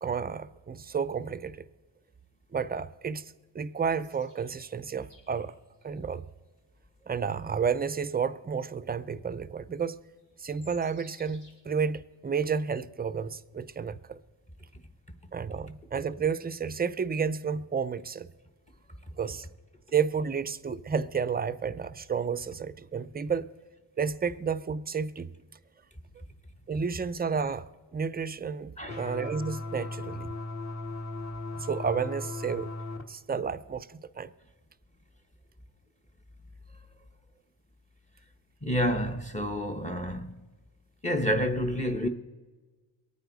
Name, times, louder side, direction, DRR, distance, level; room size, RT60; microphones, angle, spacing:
voice 1, 0.0-1.7 2.5-5.5 5.8-6.3 7.1-10.0 10.4-14.2 15.3-18.3 19.2-19.5 19.9-23.5 24.0-25.3 26.7-27.7 27.9-30.3 31.5-32.7 33.1-34.3, right 6 dB, 20° right, 0.4 m, -31 dB
sound 1, 4.0-6.0 6.6-6.7 7.2-7.4 8.3-8.4 9.8-9.9 10.2-11.6, left 2 dB, 75° left, 4.5 m, -58 dB
sound 2, 28.9-33.0, left 2 dB, 35° left, 1.5 m, -37 dB
voice 2, 38.6-40.3 41.0-42.1, equal, 15° left, 0.9 m, -29 dB
23.5 x 9.2 x 4.0 m
cardioid pair, 100°, 45 cm